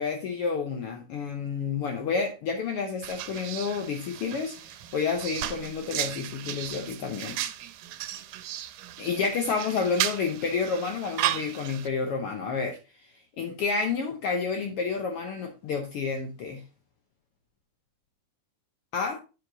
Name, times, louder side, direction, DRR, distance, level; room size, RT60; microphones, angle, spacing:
voice 1, 0.0-7.4 9.0-16.6 18.9-19.2, left 5 dB, 85° left, 1.2 m, -30 dB
sound 1, 3.0-11.9, right 13 dB, 90° right, 2.2 m, -35 dB
8.5 x 4.8 x 3.8 m
omnidirectional pair, 3.7 m